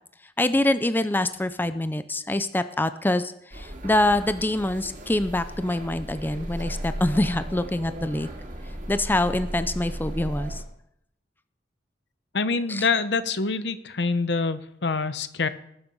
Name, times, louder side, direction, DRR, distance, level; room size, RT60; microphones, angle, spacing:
voice 1, 0.4-8.3 8.9-10.6 12.7-12.8, left 1 dB, 10° left, 12 dB, 0.5 m, -25 dB
sound 1, 3.5-10.6, equal, 45° right, 2.3 m, -36 dB
voice 2, 12.3-15.5, left 4 dB, 70° left, 12 dB, 0.9 m, -25 dB
19.5 x 7.2 x 5.5 m, 0.75 s
head